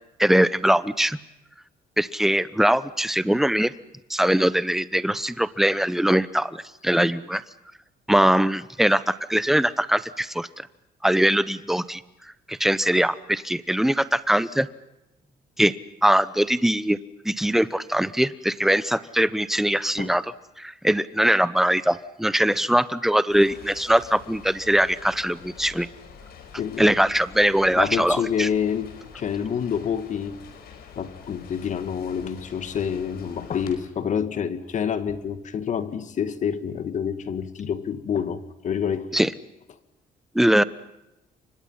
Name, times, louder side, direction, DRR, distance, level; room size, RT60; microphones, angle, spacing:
voice 1, 0.2-1.2 2.0-3.7 4.1-7.4 8.1-10.7 11.0-12.0 12.5-14.7 15.6-15.8 16.0-17.0 17.2-20.2 20.6-25.9 26.8-28.5 39.1-39.3 40.3-40.6, right 1 dB, ahead, 16 dB, 0.9 m, -21 dB
sound 1, 23.3-33.7, left 6 dB, 70° left, 4.8 m, -46 dB
voice 2, 26.6-26.9 27.8-30.4 31.0-39.2, left 7 dB, 50° left, 11 dB, 1.9 m, -28 dB
29.5 x 25.0 x 5.7 m, 0.90 s
cardioid pair, 125°, 16 cm